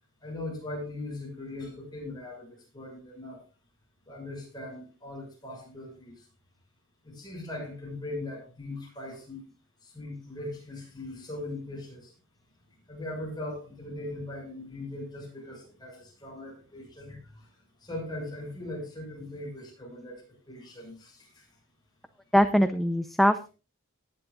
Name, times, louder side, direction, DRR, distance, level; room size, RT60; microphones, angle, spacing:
voice 1, 0.2-3.4 4.1-6.2 7.0-9.4 9.8-12.1 12.9-17.5 17.8-21.4, left 1 dB, 20° left, -1 dB, 6.4 m, -40 dB
voice 2, 22.3-23.5, equal, ahead, 8 dB, 0.5 m, -22 dB
18.5 x 10.5 x 2.4 m, 0.32 s
head